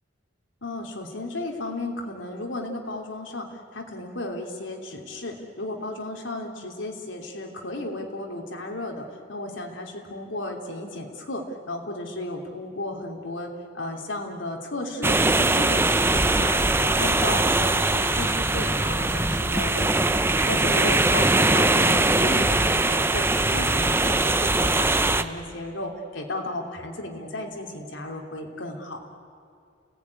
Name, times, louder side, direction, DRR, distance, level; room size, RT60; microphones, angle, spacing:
voice 1, 0.6-20.2 20.5-29.1, left 2 dB, 80° left, 2 dB, 3.1 m, -34 dB
sound 1, 15.0-25.2, right 2 dB, 10° right, 0.7 m, -21 dB
30.0 x 18.5 x 9.8 m, 2.4 s
head